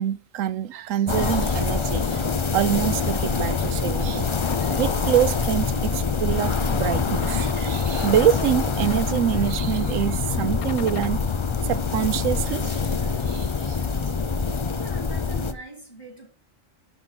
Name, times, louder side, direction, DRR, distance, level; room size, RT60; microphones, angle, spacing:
voice 1, 0.0-2.2 2.5-11.2 11.6-13.8, right 11 dB, 85° right, 1.1 m, -26 dB
sound 1, 1.1-15.5, left 4 dB, 35° left, 0.5 m, -25 dB
sound 2, 3.0-13.2, left 10 dB, 90° left, 1.0 m, -37 dB
voice 2, 14.7-16.3, right 1 dB, 20° left, 3.1 m, -41 dB
11.5 x 4.0 x 5.8 m
omnidirectional pair, 1.3 m